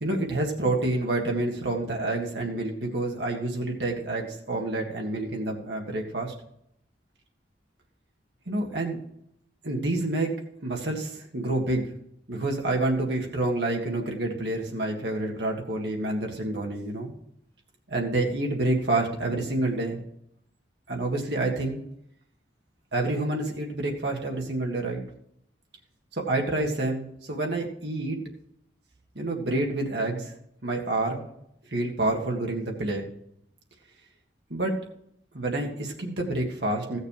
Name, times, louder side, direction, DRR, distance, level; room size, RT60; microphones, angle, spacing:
voice 1, 0.0-6.3 8.5-9.0 9.6-11.9 12.3-17.1 17.9-20.0 20.9-21.8 22.9-25.0 26.1-28.2 29.2-30.3 30.6-31.3 31.7-33.1 34.5-34.7 35.3-37.0, right 2 dB, 70° right, 1 dB, 1.8 m, -28 dB
15.5 x 6.5 x 4.8 m, 0.74 s
head